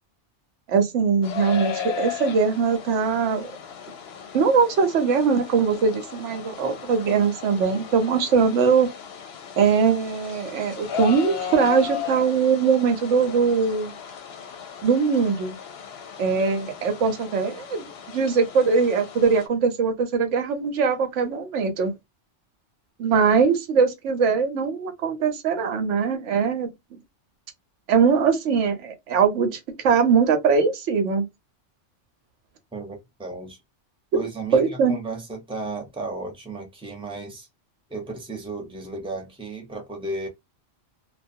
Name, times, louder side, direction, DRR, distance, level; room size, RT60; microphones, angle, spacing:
voice 1, 0.7-3.5 4.3-8.9 9.6-13.9 14.8-15.6 16.2-21.9 23.0-26.7 27.9-31.3 34.5-34.9, right 5 dB, 80° right, 1.0 m, -21 dB
sound 1, 1.2-19.5, left 8 dB, 65° left, 0.8 m, -36 dB
voice 2, 32.7-33.6 34.1-37.5 37.9-40.3, right 2 dB, 5° right, 0.8 m, -34 dB
2.3 x 2.3 x 2.6 m
omnidirectional pair, 1.2 m